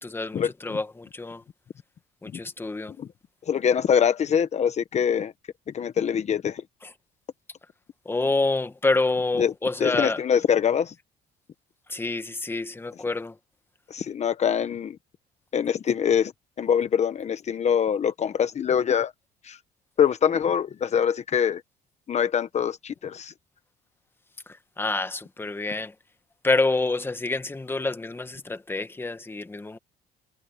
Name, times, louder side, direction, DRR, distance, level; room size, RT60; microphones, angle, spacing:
voice 1, 0.0-1.4 2.2-2.9 6.8-6.9 8.0-10.2 11.9-13.4 24.5-25.9 26.4-29.8, left 3 dB, 15° left, 1.4 m, -27 dB
voice 2, 3.5-5.3 5.7-6.6 9.4-9.5 9.8-10.9 13.9-15.0 15.5-16.3 16.6-19.1 19.4-19.6 20.0-21.6 22.1-23.3, left 8 dB, 40° left, 1.1 m, -24 dB
cardioid pair, 110°, 17 cm